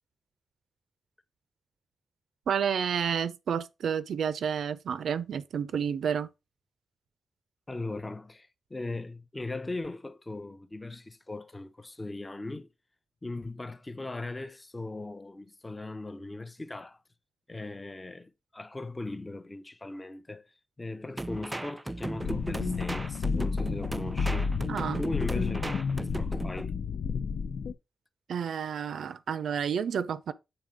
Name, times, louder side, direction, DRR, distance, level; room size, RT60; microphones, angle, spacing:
voice 1, 2.5-6.3 24.7-25.0 25.3-25.6 28.3-30.3, right 7 dB, 70° right, 0.6 m, -30 dB
voice 2, 7.7-12.7 13.2-17.0 17.5-20.4 20.8-24.5 25.0-26.7, left 2 dB, 15° left, 0.7 m, -39 dB
sound 1, 21.2-26.7, right 2 dB, 10° right, 0.3 m, -36 dB
sound 2, 22.2-27.7, left 5 dB, 65° left, 0.5 m, -31 dB
8.9 x 3.8 x 5.0 m
wide cardioid pair, 170°, 0 cm